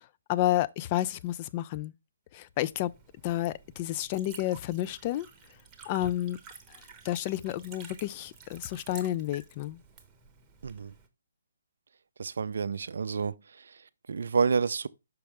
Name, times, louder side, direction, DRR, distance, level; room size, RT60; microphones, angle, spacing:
voice 1, 0.3-1.9 2.3-2.9 3.2-5.3 5.9-6.4 6.7-9.8, left 14 dB, 30° left, 0.3 m, -30 dB
Liquid, 2.5-11.1, right 5 dB, 15° right, 0.9 m, -52 dB
voice 2, 10.6-10.9 12.2-13.4 14.1-14.9, right 5 dB, 60° right, 0.4 m, -28 dB
5.8 x 5.1 x 3.4 m
figure-of-eight pair, 140°, 0 cm